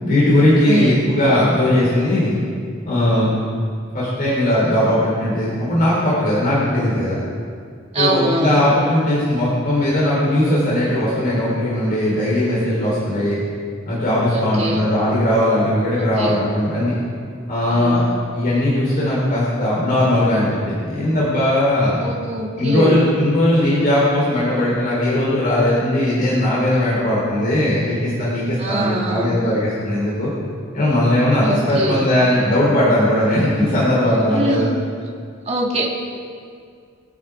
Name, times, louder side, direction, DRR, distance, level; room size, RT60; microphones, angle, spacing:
voice 1, 0.0-2.4 2.8-3.3 3.9-7.2 8.0-13.4 13.9-16.9 17.5-18.0 18.3-22.0 22.6-30.3 30.7-34.6, left 1 dB, 45° left, -8 dB, 4.0 m, -18 dB
voice 2, 7.9-8.6 14.3-14.9 16.2-16.4 17.7-18.0 22.0-23.0 28.6-29.3 31.4-32.0 34.3-34.7 35.5-35.9, right 1 dB, 35° right, -3 dB, 2.2 m, -23 dB
25.0 x 8.7 x 3.7 m, 2.2 s
head